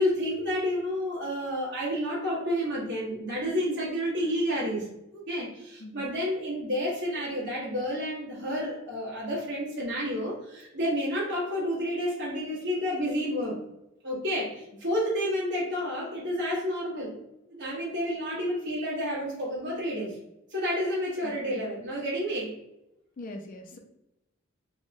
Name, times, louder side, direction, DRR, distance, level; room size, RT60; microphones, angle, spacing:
voice 1, 0.0-4.9 5.1-13.6 14.0-17.2 17.5-20.1 20.5-22.5, equal, 60° right, -7 dB, 1.1 m, -30 dB
voice 2, 21.2-21.6 23.2-23.8, left 1 dB, 45° left, 3 dB, 0.4 m, -42 dB
3.4 x 2.1 x 2.6 m, 0.87 s
head